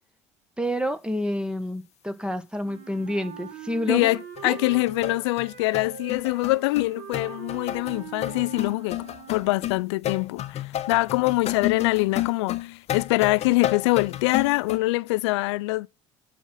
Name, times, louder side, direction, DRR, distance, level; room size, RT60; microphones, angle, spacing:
voice 1, 0.6-4.2 4.4-4.6, equal, 5° right, 1.7 m, -29 dB
Wind instrument woodwind instrument, 2.6-10.0, right 6 dB, 65° right, 2.5 m, -42 dB
voice 2, 3.9-4.2 4.4-9.0 9.3-15.9, left 21 dB, 70° left, 0.4 m, -24 dB
sound 1, 4.4-4.5 4.7-14.8, left 13 dB, 45° left, 1.0 m, -31 dB
8.0 x 6.3 x 8.0 m
figure-of-eight pair, 55°, 15 cm